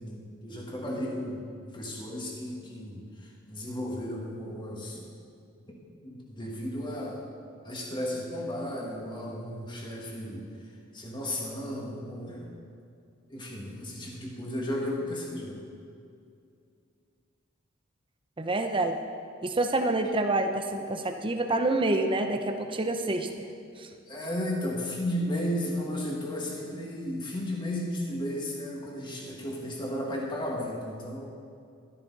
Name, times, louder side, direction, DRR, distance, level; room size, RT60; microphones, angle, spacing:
voice 1, 0.0-5.1 5.7-7.3 7.6-10.5 10.9-12.5 13.3-15.6 24.1-31.3, left 1 dB, 20° left, -2 dB, 1.8 m, -34 dB
voice 2, 18.4-19.0 19.4-22.4 22.7-23.3 23.8-23.9, right 2 dB, 25° right, 5 dB, 0.7 m, -27 dB
12.5 x 10.5 x 4.1 m, 2.5 s
head